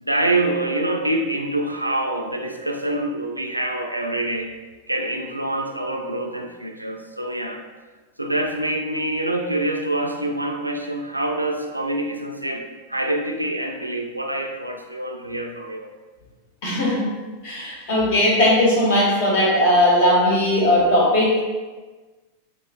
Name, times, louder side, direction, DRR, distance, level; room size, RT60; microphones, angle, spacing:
voice 1, 0.0-4.5 4.9-7.6 8.2-15.9, right 1 dB, 85° right, 3 dB, 0.3 m, -26 dB
voice 2, 16.6-17.1 17.4-21.4, left 1 dB, 50° left, -3 dB, 1.1 m, -18 dB
5.1 x 2.5 x 2.4 m, 1.3 s
figure-of-eight pair, 90°, 0 cm